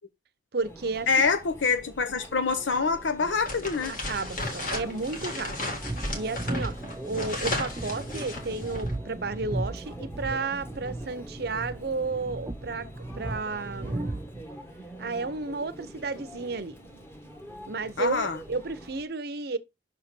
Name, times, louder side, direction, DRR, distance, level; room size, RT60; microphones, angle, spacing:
voice 1, 0.5-1.1 4.1-5.8 6.1-6.8 7.0-12.9 13.1-14.2 15.0-16.8 17.7-19.6, right 3 dB, 55° right, 0.7 m, -32 dB
Conversation / Chatter / Crowd, 0.6-19.0, right 1 dB, 15° left, 1.2 m, -46 dB
voice 2, 1.1-3.9 18.0-18.4, left 5 dB, 85° left, 0.8 m, -25 dB
sound 1, 3.4-8.9, left 2 dB, 45° left, 1.9 m, -34 dB
sound 2, 5.8-14.4, right 1 dB, 20° right, 0.5 m, -36 dB
6.1 x 4.0 x 5.9 m
head